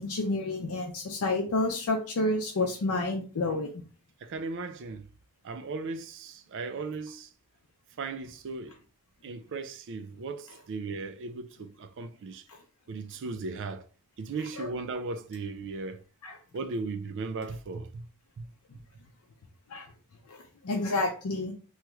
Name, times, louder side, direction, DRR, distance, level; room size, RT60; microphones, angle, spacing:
voice 1, 0.0-3.7 14.6-14.7 16.2-16.3 19.7-19.9 20.3-20.4 20.6-21.5, left 2 dB, 75° left, 0.5 m, -29 dB
voice 2, 4.2-5.1 5.4-7.3 8.0-8.8 9.2-12.4 12.9-13.8 14.2-16.0 16.5-18.1 18.4-18.5, right 3 dB, 55° right, 0.4 m, -37 dB
2.9 x 2.3 x 3.0 m
head